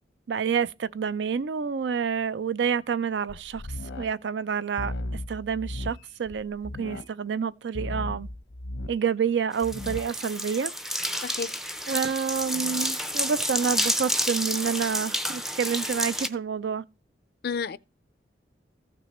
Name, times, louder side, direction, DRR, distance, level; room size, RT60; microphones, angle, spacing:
voice 1, 0.3-3.6 4.0-8.3 8.9-10.7 11.9-16.8, right 6 dB, 70° right, 0.4 m, -28 dB
sound 1, 3.3-4.1 4.8-7.1 7.7-9.0 9.6-10.0, left 1 dB, 90° left, 0.9 m, -35 dB
sound 2, 9.5-16.3, equal, ahead, 0.4 m, -30 dB
voice 2, 11.2-11.5 17.4-17.8, left 5 dB, 55° left, 0.4 m, -30 dB
Laughter, 13.5-14.5, right 4 dB, 90° right, 0.9 m, -44 dB
14.5 x 6.1 x 4.2 m
head